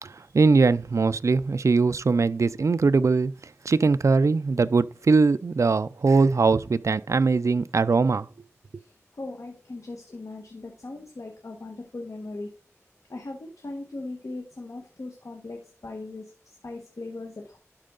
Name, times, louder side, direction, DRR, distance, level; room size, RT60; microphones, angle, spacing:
voice 1, 0.0-3.3 3.7-8.3, right 4 dB, 75° right, 0.3 m, -21 dB
voice 2, 9.1-12.5 13.1-17.6, left 2 dB, 85° left, 1.3 m, -39 dB
12.0 x 4.5 x 3.8 m
wide cardioid pair, 50°, 5 cm